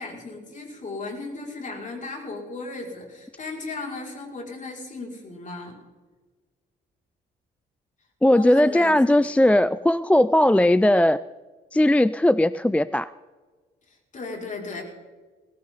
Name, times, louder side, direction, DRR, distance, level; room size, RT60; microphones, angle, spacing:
voice 1, 0.0-5.8 8.3-9.5 13.9-14.8, left 3 dB, 40° left, -1 dB, 5.9 m, -36 dB
voice 2, 8.2-11.2 11.7-13.1, left 1 dB, 5° left, 16 dB, 0.4 m, -18 dB
20.5 x 17.0 x 4.0 m, 1.4 s
cardioid pair, 90°, 20 cm